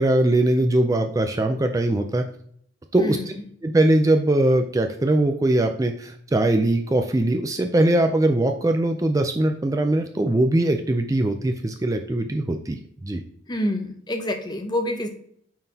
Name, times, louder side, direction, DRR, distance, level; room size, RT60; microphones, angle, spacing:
voice 1, 0.0-2.2 2.9-3.2 3.6-13.2, right 1 dB, 15° right, 5 dB, 0.3 m, -21 dB
voice 2, 3.0-3.3 13.5-15.1, left 1 dB, 20° left, 6 dB, 0.6 m, -27 dB
8.8 x 3.9 x 2.8 m, 0.63 s
head